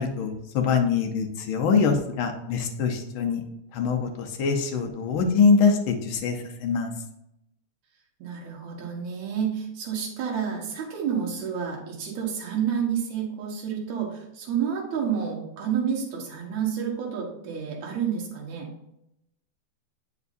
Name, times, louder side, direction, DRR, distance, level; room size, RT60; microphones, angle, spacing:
voice 1, 0.0-3.4 3.7-6.9, left 5 dB, 75° left, 3 dB, 1.2 m, -24 dB
voice 2, 8.2-18.7, right 7 dB, 75° right, -2 dB, 2.6 m, -29 dB
8.2 x 5.9 x 2.6 m, 0.81 s
omnidirectional pair, 3.3 m